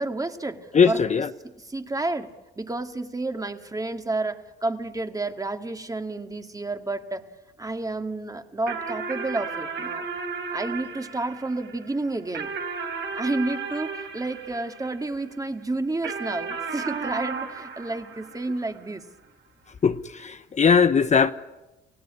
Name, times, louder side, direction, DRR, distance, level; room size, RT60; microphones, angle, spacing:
voice 1, 0.0-0.6 0.9-1.0 1.4-7.3 7.6-10.1 10.5-12.5 13.1-19.0, right 2 dB, 15° right, 2.0 m, -30 dB
voice 2, 0.7-1.3 19.8-21.3, left 6 dB, 35° left, 0.9 m, -19 dB
sound 1, 8.7-15.4 16.0-18.9, right 5 dB, 65° right, 3.7 m, -34 dB
28.0 x 17.5 x 9.7 m
cardioid pair, 90°, 20 cm